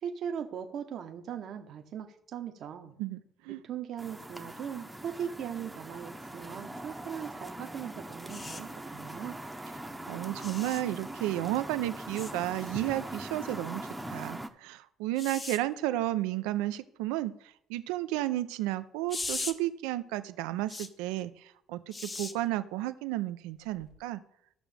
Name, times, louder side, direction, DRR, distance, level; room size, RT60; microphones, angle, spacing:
voice 1, 0.0-2.9 3.5-9.4, right 8 dB, 60° right, 5 dB, 0.9 m, -39 dB
voice 2, 3.0-3.6 10.1-13.8 14.1-24.2, right 15 dB, 90° right, 12 dB, 0.6 m, -33 dB
sound 1, 4.0-14.5, right 1 dB, 5° right, 0.9 m, -42 dB
sound 2, 8.3-8.6 10.4-10.8 12.1-12.3 15.2-15.6 19.1-19.5 20.7-20.9 21.9-22.3 23.8-24.0, left 3 dB, 25° left, 1.0 m, -38 dB
14.5 x 6.1 x 3.4 m, 0.72 s
supercardioid pair, 90°, 0 cm